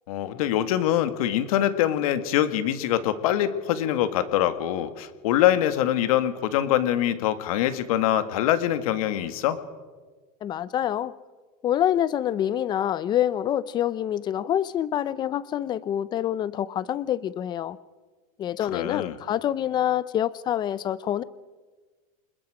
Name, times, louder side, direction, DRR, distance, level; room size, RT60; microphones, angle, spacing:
voice 1, 0.1-9.6 18.7-19.2, left 12 dB, 65° left, 10 dB, 1.9 m, -24 dB
voice 2, 10.4-11.1 11.6-17.8 18.4-21.2, left 11 dB, 20° left, 18 dB, 0.6 m, -26 dB
27.5 x 21.0 x 5.0 m, 1.4 s
supercardioid pair, 155°, 20 cm